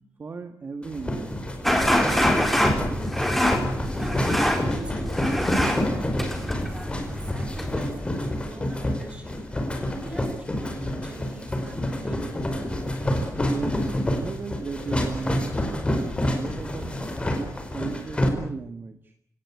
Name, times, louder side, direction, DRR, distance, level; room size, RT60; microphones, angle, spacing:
voice 1, 0.2-1.4 1.7-3.1 13.5-13.9 14.1-17.0 17.4-19.1, right 4 dB, 40° right, 7 dB, 1.7 m, -36 dB
sound 1, 0.8-18.3, left 1 dB, 20° left, 4.9 m, -28 dB
sound 2, 1.6-7.9, equal, 5° left, 4.1 m, -25 dB
voice 2, 4.0-6.9 7.2-9.4 9.8-12.6, right 1 dB, 20° right, 4 dB, 7.4 m, -42 dB
29.5 x 18.0 x 8.5 m, 0.68 s
wide cardioid pair, 140°, 6 cm